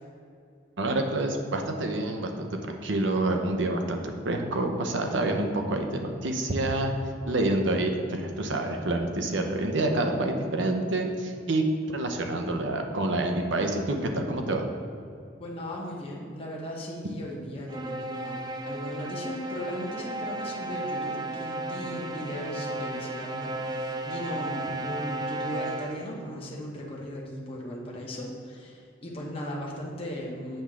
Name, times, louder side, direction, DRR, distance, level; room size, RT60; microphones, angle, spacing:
voice 1, 0.8-6.9 7.3-14.7, right 2 dB, 75° right, 4 dB, 0.8 m, -27 dB
voice 2, 15.4-30.6, equal, 30° left, -3 dB, 1.0 m, -37 dB
sound 1, 17.7-26.2, right 2 dB, 20° right, 0.3 m, -34 dB
7.9 x 3.5 x 6.1 m, 2.4 s
head